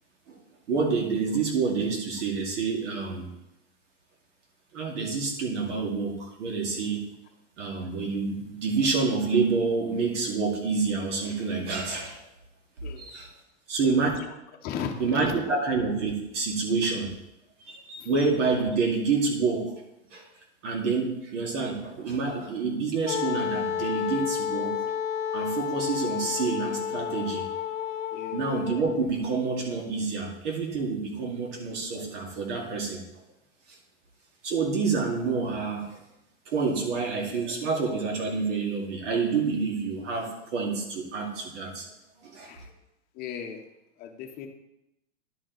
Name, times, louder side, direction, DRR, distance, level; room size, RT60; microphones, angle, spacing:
voice 1, 0.7-3.3 4.7-7.0 7.6-12.2 13.0-13.3 13.7-14.1 15.0-17.1 17.7-19.7 20.1-20.2 20.6-24.8 25.3-27.4 28.3-33.0 34.4-35.9 36.5-41.9 42.2-42.5, right 4 dB, 75° right, 0 dB, 2.3 m, -28 dB
voice 2, 12.8-13.2 14.2-14.3 14.6-15.6 18.0-18.1 28.1-28.4 42.4-42.7 43.1-43.6 44.0-44.5, left 7 dB, 25° left, 3 dB, 0.9 m, -37 dB
Wind instrument woodwind instrument, 23.1-29.0, left 9 dB, 85° left, 0.6 m, -31 dB
11.0 x 4.5 x 3.9 m, 0.88 s
supercardioid pair, 155°, 36 cm